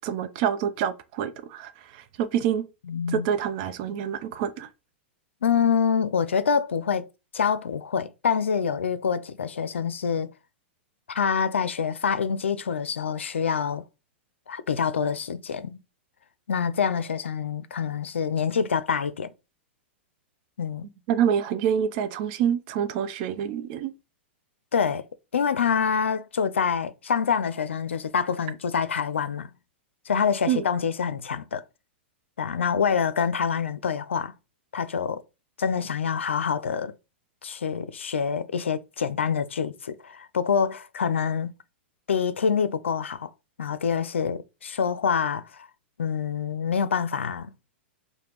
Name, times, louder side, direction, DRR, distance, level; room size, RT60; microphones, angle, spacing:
voice 1, 0.0-2.7 3.1-4.7 21.1-23.9 30.5-30.6, right 9 dB, 50° right, 0.6 m, -27 dB
voice 2, 2.9-3.3 5.4-7.1 7.3-10.3 11.1-13.8 14.5-15.8 16.5-19.3 20.6-20.9 24.7-25.0 25.3-29.5 30.1-31.6 32.4-34.3 34.7-35.2 35.6-36.9 37.4-41.5 42.1-43.3 43.6-45.7 46.0-47.5, left 6 dB, 90° left, 0.4 m, -26 dB
5.0 x 2.1 x 3.0 m
hypercardioid pair, 115°, 6 cm